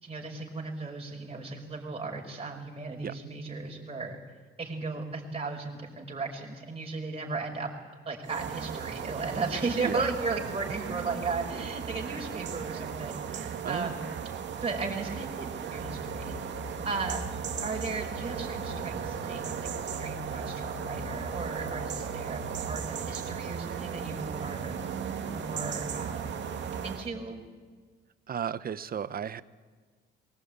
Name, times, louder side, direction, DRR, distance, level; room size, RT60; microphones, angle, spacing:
voice 1, 0.0-4.2 4.6-7.7 8.0-14.1 14.6-16.3 16.8-17.3 17.6-24.8 25.3-26.4 26.8-27.4, right 3 dB, 30° right, 0 dB, 5.1 m, -36 dB
sound 1, 8.2-27.1, right 7 dB, 65° right, 2.4 m, -36 dB
sound 2, 15.8-23.5, left 6 dB, 65° left, 4.2 m, -45 dB
voice 2, 28.3-29.4, right 8 dB, 50° right, 15 dB, 0.9 m, -34 dB
22.5 x 18.0 x 8.9 m, 1.5 s
cardioid pair, 90°, 20 cm